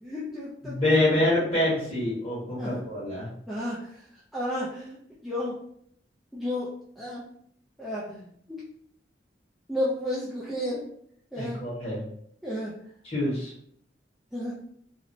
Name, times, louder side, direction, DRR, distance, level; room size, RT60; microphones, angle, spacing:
voice 1, 0.0-1.0 2.6-2.8 3.5-4.0 4.3-5.0 5.2-5.6 6.3-7.2 7.8-8.6 9.7-10.9 11.3-11.6 12.4-12.8 14.3-14.5, left 1 dB, ahead, -8 dB, 0.3 m, -32 dB
voice 2, 0.6-3.3 11.4-12.0 13.0-13.5, left 1 dB, 35° left, -8 dB, 1.4 m, -26 dB
2.9 x 2.1 x 2.6 m, 0.66 s
head